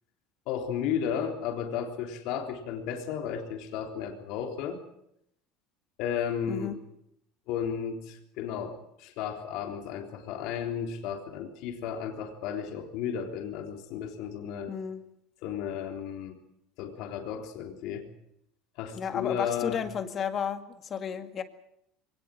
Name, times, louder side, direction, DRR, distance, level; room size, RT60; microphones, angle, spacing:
voice 1, 0.5-4.8 6.0-6.8 7.5-14.7 15.4-16.4 16.8-18.1 18.8-19.8, left 8 dB, 65° left, 4 dB, 3.6 m, -34 dB
voice 2, 6.5-6.8 14.7-15.0 19.0-21.4, left 7 dB, 35° left, 9 dB, 2.0 m, -33 dB
22.5 x 18.5 x 7.7 m, 0.76 s
supercardioid pair, 120°, 0 cm